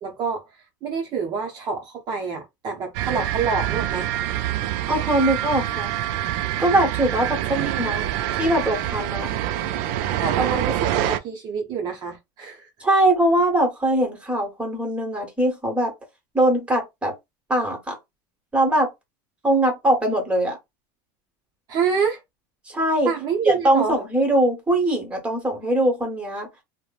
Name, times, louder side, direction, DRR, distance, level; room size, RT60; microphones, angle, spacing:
voice 1, 0.0-4.1 7.5-7.8 10.2-12.7 21.7-22.2 23.0-23.9, right 5 dB, 40° right, 0.7 m, -27 dB
sound 1, 2.9-11.2, right 12 dB, 65° right, 0.4 m, -26 dB
voice 2, 4.9-5.9 6.6-8.0 8.4-9.3 12.8-15.9 16.3-17.1 17.5-18.0 18.5-18.9 19.4-20.6 22.7-23.1 23.4-26.5, right 1 dB, 10° right, 1.3 m, -21 dB
3.0 x 2.1 x 2.4 m
supercardioid pair, 130°, 11 cm